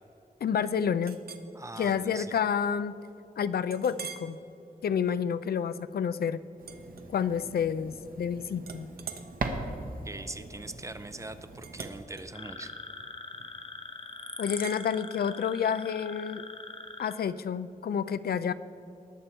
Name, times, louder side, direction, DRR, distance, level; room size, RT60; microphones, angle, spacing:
voice 1, 0.4-1.2 1.8-2.9 3.4-4.4 4.8-6.4 7.1-8.9 14.4-16.4 17.0-18.5, left 7 dB, 85° left, 14 dB, 0.4 m, -29 dB
Chink clink, 1.0-1.5 2.0-2.2 2.7-2.8 3.7-4.3 4.9-5.1 6.6-7.6 7.9-8.3 8.6-13.7 14.6-14.8, right 6 dB, 85° right, 0.8 m, -46 dB
voice 2, 1.5-2.4 9.7-12.7, right 2 dB, 20° right, 11 dB, 0.5 m, -42 dB
sound 1, 6.6-12.0, right 3 dB, 70° right, 1.1 m, -40 dB
sound 2, 12.3-17.1, left 3 dB, 35° left, 0.9 m, -42 dB
19.5 x 6.9 x 4.4 m, 2.8 s
wide cardioid pair, 145°, 16 cm